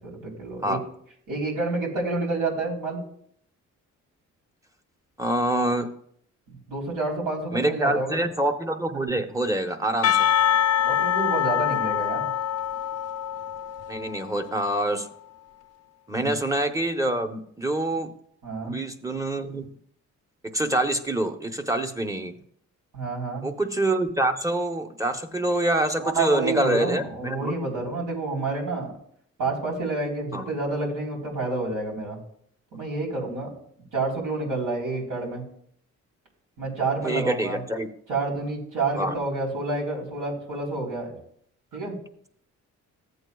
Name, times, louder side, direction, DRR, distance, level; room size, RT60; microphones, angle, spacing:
voice 1, 0.0-0.8 1.3-3.0 6.5-8.2 10.9-12.3 16.1-16.3 18.4-18.8 22.9-23.5 26.0-28.9 29.4-32.2 32.7-33.5 33.9-35.4 36.6-37.6 38.1-41.1 41.7-42.0, right 3 dB, 80° right, -3 dB, 3.7 m, -29 dB
voice 2, 5.2-5.9 7.5-10.3 13.9-15.1 16.1-18.1 18.6-19.7 20.4-22.3 23.4-27.5 30.3-30.4 37.0-37.9 39.0-39.2, right 1 dB, 10° right, 7 dB, 0.9 m, -26 dB
Percussion / Church bell, 10.0-14.6, left 10 dB, 55° left, 0.6 m, -24 dB
14.0 x 8.0 x 2.3 m, 0.66 s
cardioid pair, 85°, 31 cm